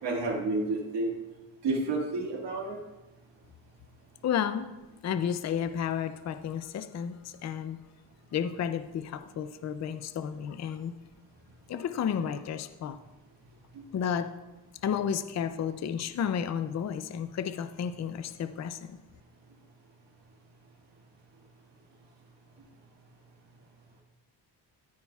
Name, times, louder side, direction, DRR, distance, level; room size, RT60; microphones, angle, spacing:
voice 1, 0.0-1.1 1.6-2.8, right 2 dB, 75° right, -1 dB, 2.0 m, -30 dB
voice 2, 4.2-4.7 5.0-7.8 8.3-11.0 11.7-13.0 13.9-14.3 14.8-19.0, left 8 dB, 40° left, 10 dB, 0.4 m, -32 dB
13.5 x 9.6 x 2.4 m, 1.1 s
wide cardioid pair, 165°, 42 cm